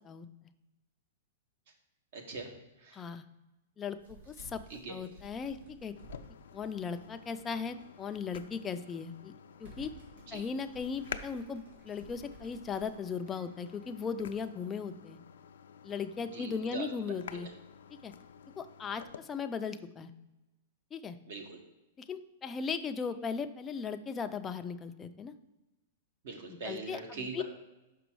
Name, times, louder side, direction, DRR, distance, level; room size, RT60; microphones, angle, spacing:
voice 1, 2.1-2.5 2.8-3.0 4.7-5.0 10.3-10.4 16.3-16.9 17.3-17.5 21.3-21.6 26.2-27.4, right 4 dB, 60° right, 4 dB, 1.4 m, -42 dB
voice 2, 2.9-3.2 3.8-4.6 4.9-6.0 6.5-9.3 9.6-9.9 10.3-15.2 15.8-17.5 17.9-18.1 18.6-20.1 20.9-21.2 22.0-25.3 26.6-27.4, left 6 dB, 15° left, 8 dB, 0.4 m, -37 dB
sound 1, 3.9-7.8 8.2-8.3 8.9-9.1 9.5-13.9, right 2 dB, 90° right, 2.5 m, -55 dB
sound 2, 6.0-19.2, left 8 dB, 85° left, 0.4 m, -50 dB
6.1 x 5.1 x 4.6 m, 1.0 s
hypercardioid pair, 150°, 0 cm